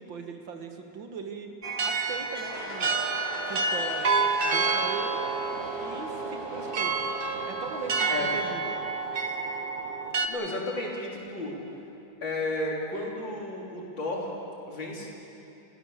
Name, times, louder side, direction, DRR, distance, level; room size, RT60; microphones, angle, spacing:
voice 1, 0.0-1.5 1.8-3.0 3.5-4.1 4.4-5.2 5.8-7.0 7.4-8.8, right 5 dB, 80° right, 4 dB, 2.4 m, -39 dB
sound 1, 1.6-10.3, right 4 dB, 35° right, 1.0 m, -29 dB
sound 2, 2.5-7.9, left 2 dB, 55° left, 2.9 m, -41 dB
voice 2, 10.3-11.6 12.2-14.3 14.7-15.1, left 2 dB, 75° left, -2 dB, 4.1 m, -33 dB
29.5 x 16.5 x 6.7 m, 2.8 s
omnidirectional pair, 2.1 m